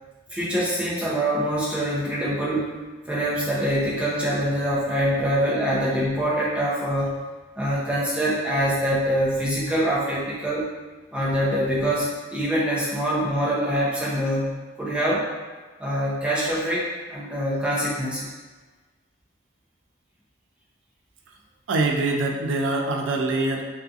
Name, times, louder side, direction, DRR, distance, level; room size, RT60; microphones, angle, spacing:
voice 1, 0.3-2.7 3.1-7.2 7.6-10.6 11.1-15.3 15.8-18.3, equal, 5° right, -7 dB, 0.5 m, -24 dB
voice 2, 21.7-23.6, right 2 dB, 80° right, 2 dB, 0.4 m, -24 dB
2.6 x 2.3 x 2.4 m, 1.3 s
head